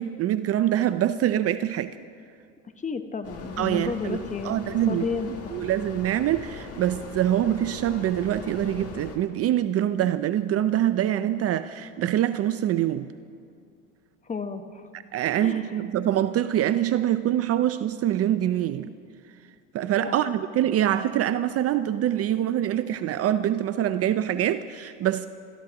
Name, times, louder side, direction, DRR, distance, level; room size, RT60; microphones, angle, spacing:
voice 1, 0.0-2.0 3.6-4.2 4.4-13.1 15.1-18.9 19.7-25.3, right 11 dB, 40° right, 12 dB, 0.5 m, -25 dB
voice 2, 2.8-4.5 4.9-5.6 14.2-14.9 15.4-15.7 20.1-20.2, left 5 dB, 20° left, 8 dB, 1.0 m, -32 dB
sound 1, 3.2-9.2, left 4 dB, 35° left, 2.0 m, -40 dB
28.5 x 14.0 x 3.0 m, 2.3 s
supercardioid pair, 105°, 40 cm